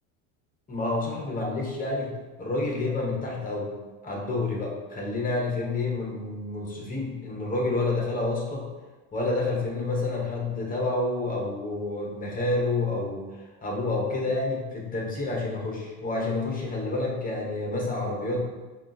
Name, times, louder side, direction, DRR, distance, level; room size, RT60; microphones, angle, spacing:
voice 1, 0.7-3.7 4.0-8.7 9.1-13.3 13.6-18.4, left 2 dB, 20° left, -2 dB, 0.7 m, -29 dB
7.1 x 2.4 x 2.6 m, 1.2 s
supercardioid pair, 130°, 44 cm